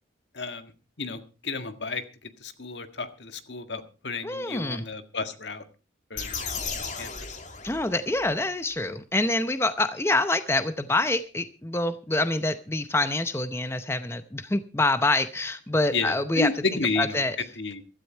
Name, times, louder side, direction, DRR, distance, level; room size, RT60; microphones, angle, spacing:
voice 1, 0.3-0.7 1.0-5.6 6.1-6.5 6.8-7.4 15.9-17.2 17.6-17.8, left 4 dB, 75° left, 9 dB, 1.7 m, -32 dB
voice 2, 4.2-4.8 7.6-16.5 17.0-17.4, left 2 dB, 15° left, 11 dB, 0.7 m, -26 dB
sound 1, 6.1-8.3, left 5 dB, 40° left, 2.5 m, -35 dB
15.5 x 13.0 x 4.5 m, 0.33 s
head